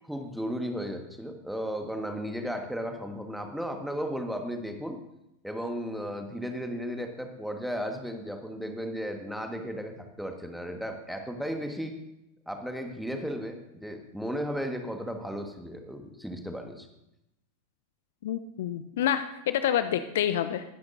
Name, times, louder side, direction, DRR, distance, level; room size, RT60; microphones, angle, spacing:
voice 1, 0.0-5.0 5.4-12.0 12.5-16.9, equal, ahead, 5 dB, 1.4 m, -35 dB
voice 2, 18.2-20.6, left 10 dB, 55° left, 11 dB, 0.5 m, -28 dB
20.0 x 10.5 x 2.6 m, 0.87 s
figure-of-eight pair, 90°, 0 cm